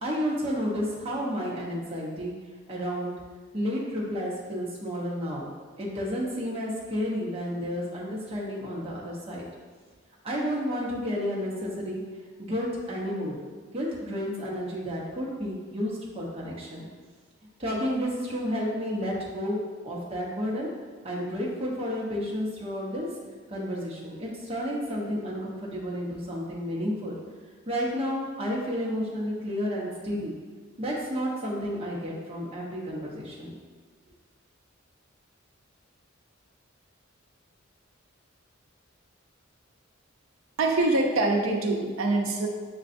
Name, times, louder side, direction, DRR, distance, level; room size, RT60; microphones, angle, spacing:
voice 1, 0.0-2.3 2.7-3.1 3.5-9.5 10.2-12.0 12.4-13.4 13.7-16.9 17.6-19.6 19.8-20.7 21.0-23.1 23.5-27.2 27.7-30.4 30.8-33.6, equal, 30° right, -5 dB, 0.8 m, -31 dB
voice 2, 40.6-42.5, right 2 dB, 90° right, 2 dB, 0.6 m, -24 dB
6.6 x 2.3 x 2.5 m, 1.5 s
head